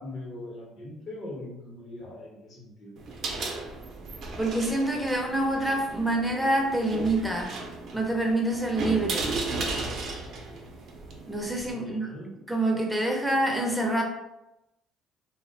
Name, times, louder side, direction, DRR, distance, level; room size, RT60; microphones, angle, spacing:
voice 1, 0.0-3.0 11.7-12.3, left 2 dB, 55° left, -3 dB, 0.8 m, -41 dB
sound 1, 3.0-11.7, right 3 dB, 60° right, 0.5 m, -35 dB
voice 2, 4.4-7.6 7.9-9.3 11.3-12.1 12.5-14.0, right 1 dB, 5° right, 1 dB, 0.5 m, -26 dB
2.4 x 2.1 x 2.6 m, 0.92 s
cardioid pair, 105°, 0 cm